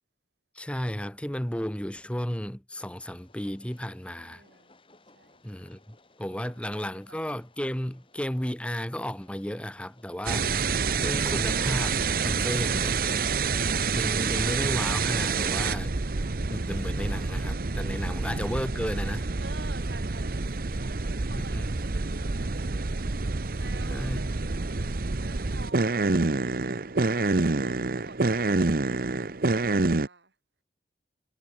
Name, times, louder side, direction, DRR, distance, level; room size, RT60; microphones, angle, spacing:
voice 1, 0.5-4.4 5.4-5.8 6.2-10.5 11.0-13.0 13.9-15.9 16.5-19.3 21.3-21.7 23.9-24.3, equal, 5° left, 1.2 m, -33 dB
Train, 2.7-15.9, left 2 dB, 30° left, 7.8 m, -61 dB
voice 2, 4.2-4.7 5.1-5.4 6.4-7.3 18.0-18.2 19.4-24.8 25.2-26.8 27.3-30.3, right 3 dB, 80° right, 5.5 m, -50 dB
sound 1, 10.3-30.1, right 3 dB, 55° right, 0.9 m, -27 dB
head